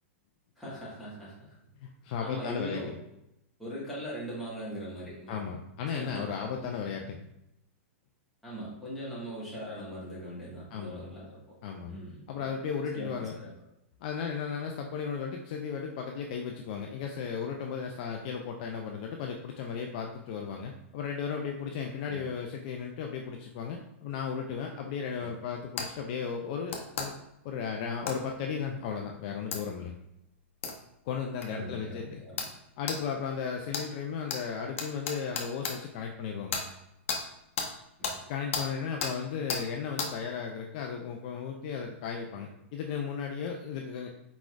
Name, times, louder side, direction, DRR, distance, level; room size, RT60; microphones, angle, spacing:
voice 1, 0.6-1.3 2.2-2.9 3.6-5.4 5.9-6.7 8.4-11.4 11.9-12.5 12.9-13.5 22.1-22.2 25.2-25.3 31.5-32.5 38.0-38.1, equal, ahead, -10 dB, 1.5 m, -40 dB
voice 2, 1.8-2.9 5.3-7.3 10.7-11.0 11.6-12.0 12.3-13.4 14.0-27.1 27.4-30.0 31.1-32.2 32.8-36.6 38.3-44.1, left 6 dB, 40° left, 2 dB, 0.4 m, -35 dB
sound 1, 25.8-25.9 26.7-27.1 28.1-28.2 29.5-29.6 30.6-30.7 31.4-31.5 32.4-32.5 32.9-33.0 33.7-33.9 34.3-34.4 34.8-35.7 36.5-36.6 37.1-37.2 37.6-37.7 38.0-38.2 38.5-38.7 39.0-39.1 39.5-39.6 40.0-40.1, left 5 dB, 75° left, 0.8 m, -32 dB
4.6 x 4.0 x 2.4 m, 0.86 s
supercardioid pair, 165°, 7 cm